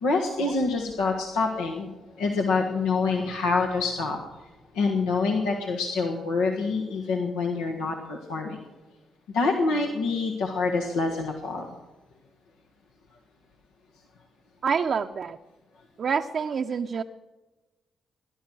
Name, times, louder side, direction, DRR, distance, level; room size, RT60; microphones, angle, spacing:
voice 1, 0.0-1.9 2.2-4.2 4.7-8.6 9.3-11.7, left 4 dB, 85° left, 0 dB, 1.5 m, -26 dB
voice 2, 14.6-15.4 16.0-17.0, right 6 dB, 60° right, 4 dB, 0.6 m, -27 dB
17.5 x 11.0 x 6.3 m, 1.1 s
hypercardioid pair, 45°, 0 cm